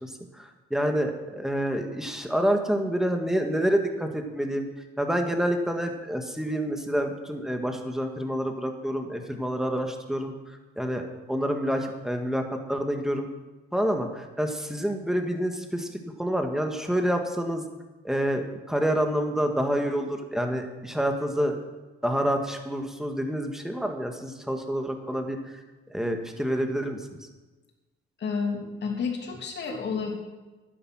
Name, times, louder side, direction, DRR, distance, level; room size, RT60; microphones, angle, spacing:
voice 1, 0.0-4.7 5.0-10.3 10.8-13.3 13.7-15.9 16.2-17.6 18.0-21.6 22.0-25.6 25.9-27.0, equal, ahead, 4 dB, 1.8 m, -28 dB
voice 2, 28.2-30.1, left 5 dB, 60° left, 1 dB, 2.9 m, -30 dB
11.0 x 9.7 x 6.2 m, 1.2 s
cardioid pair, 90°, 20 cm